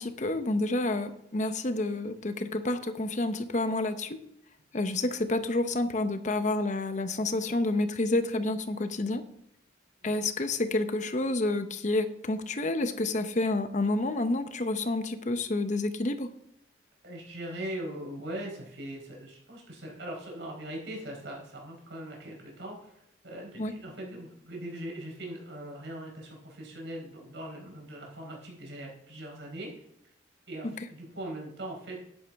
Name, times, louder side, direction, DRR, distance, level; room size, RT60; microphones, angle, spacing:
voice 1, 0.0-4.2 4.7-9.2 10.0-16.3 23.6-23.7, left 2 dB, 40° left, 10 dB, 0.8 m, -29 dB
voice 2, 17.0-22.9 23.2-29.7 30.5-32.0, right 1 dB, 85° right, -1 dB, 4.3 m, -40 dB
11.0 x 10.0 x 3.6 m, 0.78 s
head